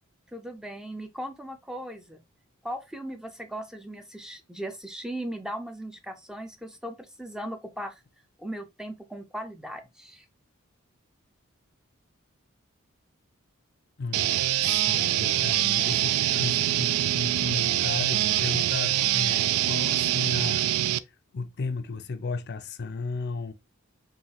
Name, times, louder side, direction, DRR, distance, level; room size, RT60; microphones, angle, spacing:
voice 1, 0.3-2.2 2.6-8.0 8.4-10.3, right 1 dB, 5° right, 0.4 m, -38 dB
voice 2, 14.0-14.3 14.6-20.7 20.9-23.5, left 4 dB, 50° left, 0.5 m, -34 dB
sound 1, 14.1-21.0, right 13 dB, 85° right, 0.3 m, -24 dB
5.5 x 2.6 x 2.9 m
head